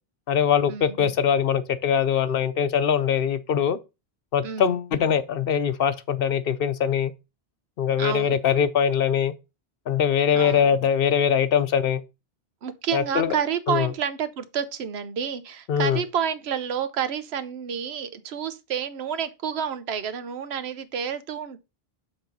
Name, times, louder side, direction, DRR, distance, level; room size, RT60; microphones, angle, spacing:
voice 1, 0.3-3.8 4.3-7.1 7.8-9.3 9.9-12.0 12.9-13.4 13.7-13.9 15.7-16.0, left 8 dB, 65° left, 0.8 m, -22 dB
voice 2, 4.4-4.8 8.0-8.4 10.3-10.6 12.6-21.6, right 7 dB, 85° right, 1.0 m, -29 dB
7.0 x 3.6 x 5.3 m
omnidirectional pair, 1.0 m